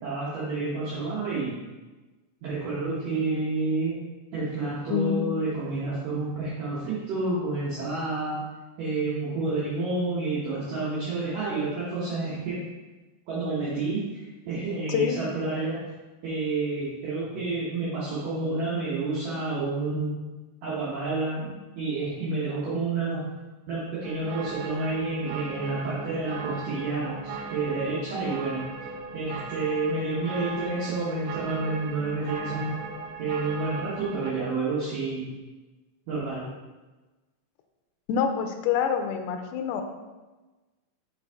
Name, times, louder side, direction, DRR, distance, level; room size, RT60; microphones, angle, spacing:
voice 1, 0.0-1.6 2.4-4.0 4.3-8.4 8.8-12.7 13.3-14.0 14.5-15.8 16.2-20.1 20.6-21.5 21.8-23.2 23.7-28.6 29.1-32.7 33.2-35.3 36.1-36.4, right 3 dB, 65° right, -9 dB, 2.4 m, -29 dB
sound 1, 24.0-34.3, right 5 dB, 85° right, 2.2 m, -38 dB
voice 2, 38.1-39.8, left 7 dB, 80° left, 6 dB, 2.5 m, -26 dB
6.0 x 5.5 x 3.5 m, 1.2 s
omnidirectional pair, 4.9 m